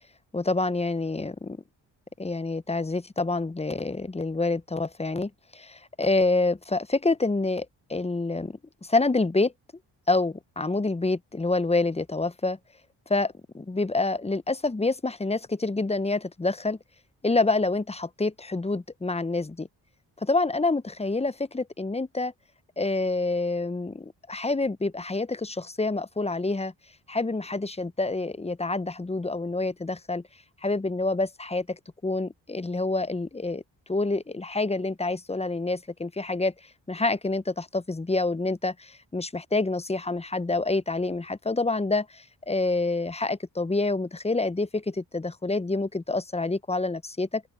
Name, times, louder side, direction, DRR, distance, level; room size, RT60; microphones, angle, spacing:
voice 1, 0.3-1.6 2.2-9.5 10.1-12.6 13.1-16.8 17.2-19.7 20.2-22.3 22.8-26.7 27.1-30.2 30.6-33.6 33.9-36.5 36.9-47.4, left 3 dB, 15° left, 0.8 m, -27 dB
open air
supercardioid pair, 45°, 44 cm